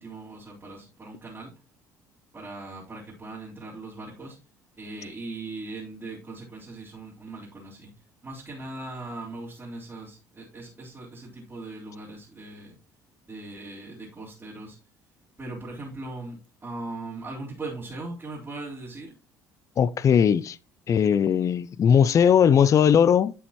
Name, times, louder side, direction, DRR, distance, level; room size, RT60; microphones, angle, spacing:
voice 1, 0.0-1.5 2.3-4.4 4.8-7.9 8.2-12.8 13.3-14.8 15.4-19.1, right 2 dB, 25° right, 3.8 m, -39 dB
voice 2, 19.8-20.6 20.9-23.3, left 8 dB, 40° left, 0.4 m, -19 dB
10.0 x 6.8 x 3.0 m
hypercardioid pair, 60°, 8 cm